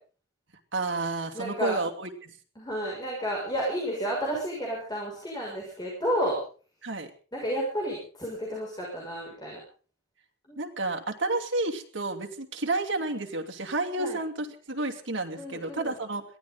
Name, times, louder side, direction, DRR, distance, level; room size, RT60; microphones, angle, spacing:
voice 1, 0.7-2.3 6.8-7.1 10.6-16.2, right 2 dB, 85° right, 4 dB, 2.8 m, -31 dB
voice 2, 1.3-1.8 2.6-6.4 7.3-9.6 10.5-10.6 14.0-14.2 15.4-15.9, equal, 20° left, -3 dB, 6.7 m, -31 dB
22.0 x 16.0 x 4.1 m, 0.40 s
head